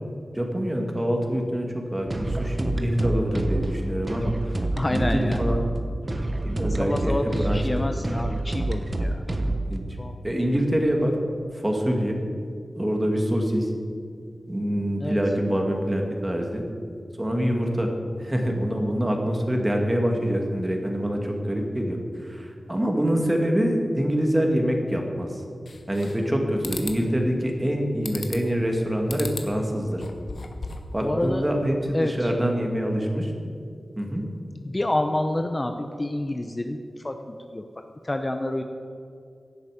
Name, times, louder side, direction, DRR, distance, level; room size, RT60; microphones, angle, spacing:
voice 1, 0.3-4.6 4.9-5.6 6.4-7.9 9.7-9.8 10.2-11.2 11.5-12.2 12.8-13.7 14.5-16.6 17.2-17.9 18.2-25.4 25.9-30.0 30.9-33.3 34.0-34.2, equal, 15° right, 1 dB, 2.2 m, -25 dB
sound 1, 2.0-9.8, right 1 dB, 35° right, 1.2 m, -28 dB
voice 2, 4.8-5.4 6.8-9.2 10.0-10.1 15.0-15.2 27.3-27.7 31.0-31.4 31.9-32.3 34.6-38.6, left 1 dB, 25° left, 6 dB, 0.7 m, -28 dB
sound 2, 25.7-26.3 26.6-27.0 28.0-28.6 29.1-29.5 29.9-30.9, left 3 dB, 70° left, 1.3 m, -36 dB
17.0 x 11.0 x 5.1 m, 2.5 s
wide cardioid pair, 95°, 0 cm